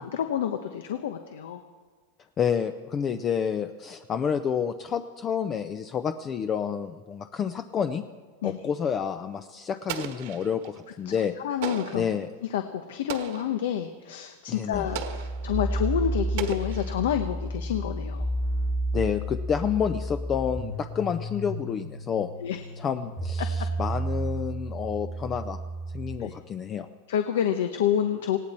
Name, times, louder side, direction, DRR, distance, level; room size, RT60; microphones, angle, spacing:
voice 1, 0.1-1.6 8.4-8.6 11.1-11.2 11.4-12.1 12.5-18.3 22.4-22.6 26.2-26.3 27.1-28.4, left 9 dB, 80° left, 7 dB, 1.0 m, -28 dB
voice 2, 2.4-8.0 8.4-11.3 11.9-12.3 14.5-14.9 18.9-22.3 22.8-25.6 25.9-26.9, left 7 dB, 25° left, 9 dB, 0.5 m, -29 dB
Explosion, 9.9-10.8 11.6-12.2 13.1-13.6 14.9-15.5 16.4-17.2, right 10 dB, 60° right, 1.4 m, -36 dB
sound 1, 14.7-26.2, right 1 dB, ahead, 1.3 m, -31 dB
19.0 x 17.0 x 4.3 m, 1.5 s
supercardioid pair, 150°, 0 cm